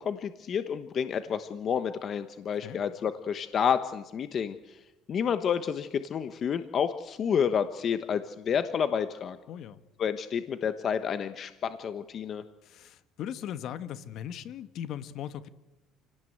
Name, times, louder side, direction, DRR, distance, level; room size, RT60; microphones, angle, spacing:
voice 1, 0.0-4.5 5.1-9.4 10.0-12.4, left 7 dB, 40° left, 10 dB, 1.1 m, -29 dB
voice 2, 9.5-9.8 12.6-15.5, left 10 dB, 55° left, 12 dB, 1.4 m, -39 dB
28.5 x 17.5 x 8.1 m, 1.1 s
cardioid pair, 130°, 0 cm